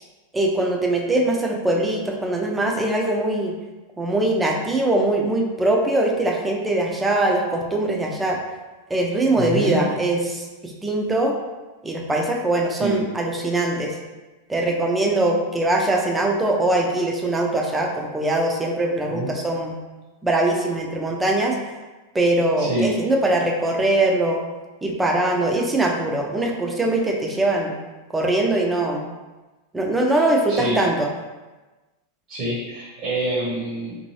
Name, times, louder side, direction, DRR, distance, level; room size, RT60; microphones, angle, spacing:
voice 1, 0.3-3.5 4.0-8.4 8.9-11.4 11.8-13.9 14.5-19.8 20.2-21.6 22.1-24.4 24.8-27.7 28.1-29.1 29.7-31.1, right 2 dB, 10° right, 0 dB, 0.5 m, -22 dB
voice 2, 9.4-9.8 12.8-13.1 19.1-19.3 22.6-23.0 30.5-30.8 32.3-34.0, right 2 dB, 40° right, -6 dB, 0.9 m, -26 dB
2.6 x 2.6 x 3.0 m, 1.2 s
figure-of-eight pair, 90°, 0 cm